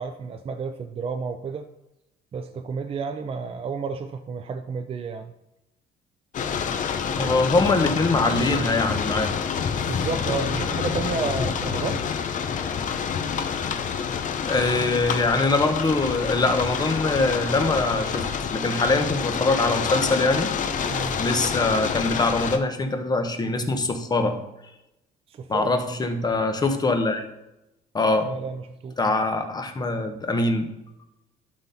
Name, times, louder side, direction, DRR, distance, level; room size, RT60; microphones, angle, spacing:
voice 1, 0.0-1.7 2.3-5.3 9.9-12.0 20.9-21.2 25.3-25.7 28.2-29.1, right 5 dB, 35° right, 7 dB, 0.6 m, -31 dB
sound 1, 6.3-22.6, left 7 dB, 50° left, 0.8 m, -27 dB
voice 2, 7.1-9.4 14.5-20.5 21.2-24.4 25.5-27.3 27.9-28.3 29.0-30.7, left 2 dB, 25° left, 6 dB, 1.1 m, -23 dB
12.0 x 4.2 x 4.2 m, 0.91 s
cardioid pair, 110°, 17 cm